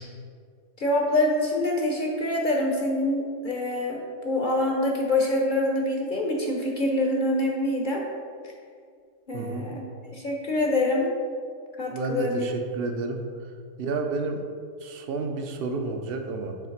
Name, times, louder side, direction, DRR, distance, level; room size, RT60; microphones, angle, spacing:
voice 1, 0.8-8.0 9.3-9.8 10.1-11.1 11.8-12.5, left 1 dB, 45° left, 0 dB, 0.7 m, -25 dB
voice 2, 9.3-9.7 11.9-13.2 13.8-14.4 14.8-16.6, right 3 dB, 55° right, 4 dB, 0.7 m, -30 dB
7.2 x 3.2 x 5.8 m, 2.1 s
omnidirectional pair, 1.5 m